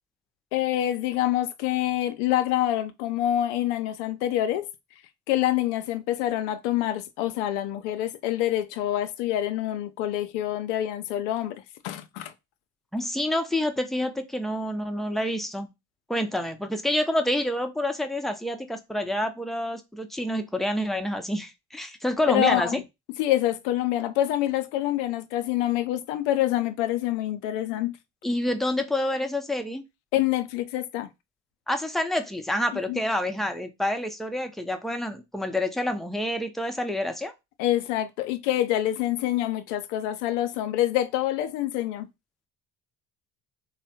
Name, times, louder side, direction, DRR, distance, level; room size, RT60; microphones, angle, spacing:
voice 1, 0.5-4.7 5.3-12.3 22.3-22.8 23.2-27.9 30.1-31.1 32.9-33.0 37.6-42.1, left 13 dB, 85° left, 0.5 m, -26 dB
voice 2, 12.9-15.7 16.1-22.8 28.2-29.8 31.7-37.3, left 1 dB, ahead, 0.5 m, -28 dB
3.3 x 2.1 x 2.7 m
hypercardioid pair, 65°, 35 cm